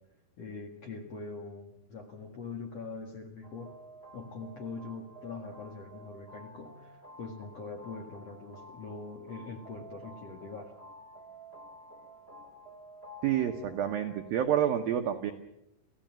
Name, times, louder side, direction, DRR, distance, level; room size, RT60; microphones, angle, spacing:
voice 1, 0.4-3.7 4.1-10.7, left 4 dB, 50° left, 3 dB, 2.0 m, -43 dB
sound 1, 3.4-14.3, right 1 dB, 20° left, 2.2 m, -51 dB
voice 2, 13.2-15.3, right 10 dB, 80° right, 6 dB, 2.1 m, -28 dB
27.0 x 16.0 x 7.6 m, 0.86 s
omnidirectional pair, 5.5 m